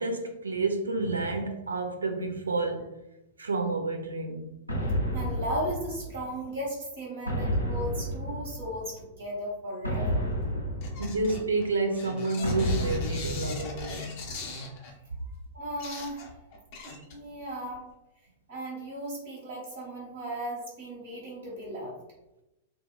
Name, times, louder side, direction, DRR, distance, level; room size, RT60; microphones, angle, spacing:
voice 1, 0.0-2.9 3.4-4.5 11.0-14.3, right 3 dB, 75° right, 0.4 m, -30 dB
sound 1, 4.7-6.5 7.3-9.0 9.8-11.6 12.4-14.2, equal, 85° left, 0.5 m, -31 dB
voice 2, 5.1-10.2 14.3-14.5 15.5-16.3 17.0-17.8 18.5-21.9, equal, 60° right, 1.4 m, -36 dB
sound 2, 10.6-14.9 15.4-15.5 15.8-17.4 17.7-17.8, left 3 dB, 45° left, 0.7 m, -40 dB
2.7 x 2.3 x 2.2 m
figure-of-eight pair, 95°, 0 cm